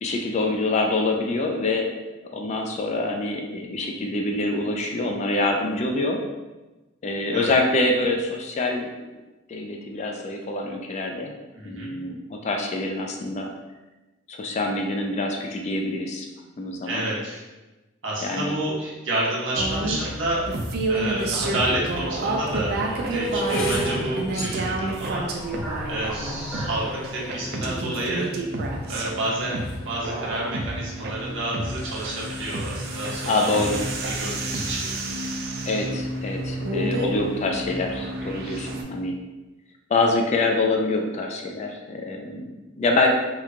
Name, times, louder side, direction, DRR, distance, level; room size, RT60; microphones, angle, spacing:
voice 1, 0.0-1.9 2.3-6.2 7.0-8.9 9.5-11.3 11.6-13.5 14.3-16.3 16.6-17.1 18.2-18.6 33.2-33.8 35.7-39.2 39.9-43.1, left 2 dB, 35° left, 2 dB, 0.3 m, -25 dB
voice 2, 11.5-11.9 16.8-17.4 18.0-20.4 20.9-25.3 25.9-28.3 28.9-33.8 34.0-35.0, right 1 dB, 65° right, -5 dB, 0.9 m, -29 dB
sound 1, 19.6-38.8, right 2 dB, 50° right, 0.4 m, -30 dB
sound 2, 21.2-21.3 22.1-28.2 28.9-29.3 29.5-29.9, right 1 dB, 70° left, 0.7 m, -33 dB
sound 3, 24.9-29.2, equal, 10° right, 0.8 m, -39 dB
3.0 x 2.2 x 3.6 m, 1.1 s
head